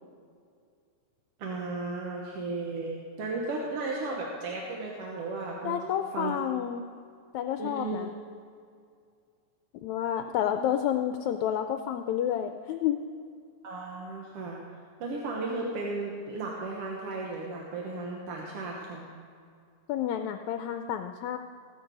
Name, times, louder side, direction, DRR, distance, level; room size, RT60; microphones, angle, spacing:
voice 1, 1.4-5.8 6.1-6.3 7.6-8.1 13.6-19.1, right 3 dB, 60° right, -2 dB, 2.0 m, -35 dB
voice 2, 5.6-6.9 7.3-8.1 9.8-13.0 19.9-21.4, left 10 dB, 80° left, 7 dB, 1.8 m, -30 dB
19.5 x 8.1 x 5.4 m, 2.3 s
omnidirectional pair, 3.5 m